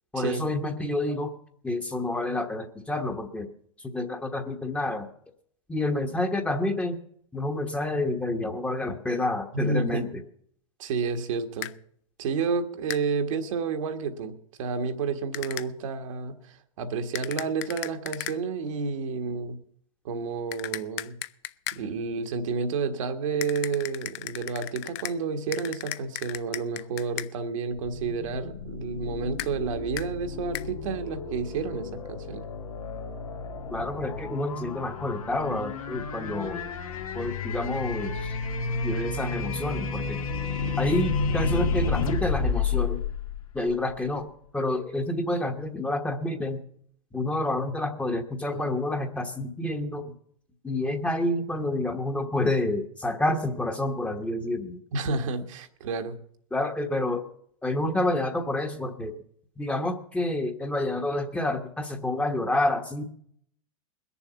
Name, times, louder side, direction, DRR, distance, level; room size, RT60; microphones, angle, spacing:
voice 1, 0.1-1.3 1.6-3.5 3.9-5.1 5.7-7.0 7.3-10.1 33.7-36.6 37.1-38.4 38.8-40.2 40.8-43.0 43.5-44.3 44.5-46.6 47.1-50.1 50.6-54.8 56.5-57.2 57.6-59.1 59.6-63.0, left 1 dB, 5° left, 5 dB, 1.2 m, -28 dB
voice 2, 9.5-10.1 10.8-11.7 12.2-19.6 20.0-21.1 21.7-32.4 54.9-56.1, right 5 dB, 65° right, 6 dB, 1.6 m, -30 dB
sound 1, 11.6-11.7 12.9-13.0 15.3-15.7 17.1-18.4 20.5-21.8 23.4-25.2 25.5-27.3 29.4-29.5 30.0-30.1 30.5-30.7, left 16 dB, 50° left, 0.6 m, -36 dB
sound 2, 27.8-44.0, left 4 dB, 85° left, 2.1 m, -31 dB
20.5 x 7.1 x 7.0 m, 0.65 s
hypercardioid pair, 120°, 18 cm